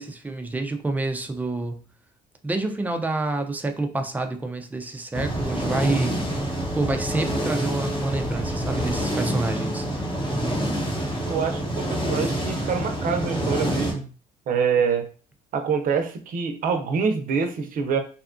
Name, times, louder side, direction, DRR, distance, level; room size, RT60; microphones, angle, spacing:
voice 1, 0.0-1.8 2.4-6.2 6.7-9.9, right 2 dB, 10° right, 5 dB, 0.4 m, -28 dB
sound 1, 5.1-13.9, right 1 dB, 30° left, 0.8 m, -27 dB
voice 2, 11.3-14.1 14.5-15.1 15.5-18.0, right 6 dB, 55° right, 6 dB, 0.6 m, -25 dB
2.7 x 2.3 x 2.4 m, 0.39 s
cardioid pair, 110°, 17 cm